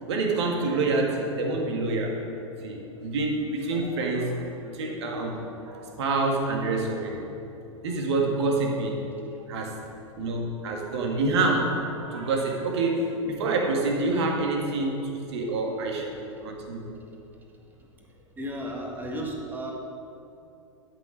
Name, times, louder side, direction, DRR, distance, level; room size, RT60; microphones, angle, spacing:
voice 1, 0.1-2.2 2.6-7.2 7.8-9.0 9.5-9.7 10.1-16.8, right 3 dB, 55° right, 1 dB, 1.7 m, -27 dB
voice 2, 18.4-19.7, equal, 10° right, -1 dB, 1.7 m, -33 dB
11.5 x 6.4 x 5.4 m, 2.7 s
figure-of-eight pair, 95°, 17 cm